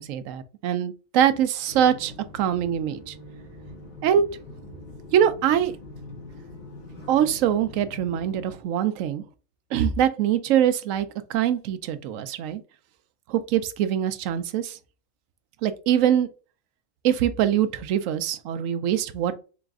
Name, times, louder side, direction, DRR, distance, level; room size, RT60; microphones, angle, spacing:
voice 1, 0.0-3.1 4.0-4.2 5.1-5.7 7.1-9.2 9.7-12.6 13.3-14.8 15.6-16.3 17.0-19.3, right 10 dB, 75° right, 0.9 m, -23 dB
sound 1, 1.7-8.6, left 2 dB, 50° left, 1.4 m, -43 dB
3.9 x 2.5 x 3.5 m
omnidirectional pair, 1.5 m